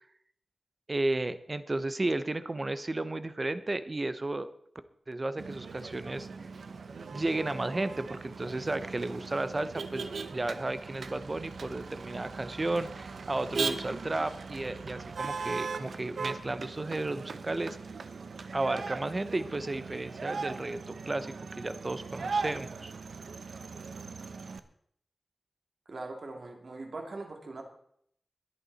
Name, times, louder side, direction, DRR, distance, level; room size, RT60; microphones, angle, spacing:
voice 1, 0.9-4.5 5.1-6.3 7.1-17.8 18.5-22.9, right 2 dB, 30° right, 12 dB, 0.9 m, -33 dB
Motor vehicle (road), 5.4-24.6, right 4 dB, 80° right, 1.0 m, -39 dB
voice 2, 25.9-27.6, right 2 dB, 55° right, 3 dB, 2.8 m, -41 dB
22.5 x 8.9 x 4.2 m, 0.67 s
wide cardioid pair, 110°, 0 cm